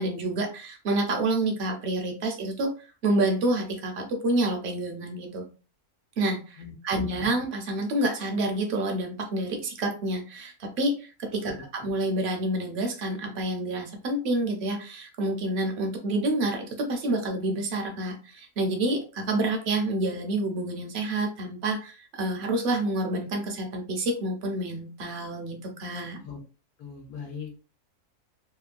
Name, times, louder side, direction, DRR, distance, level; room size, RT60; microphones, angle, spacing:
voice 1, 0.0-2.7 3.0-5.5 6.2-26.2, right 2 dB, 55° right, 3 dB, 0.8 m, -28 dB
voice 2, 6.6-7.3 11.4-11.6 26.2-26.4 26.8-27.6, left 6 dB, 80° left, -1 dB, 1.2 m, -41 dB
2.9 x 2.2 x 2.4 m, 0.36 s
omnidirectional pair, 1.6 m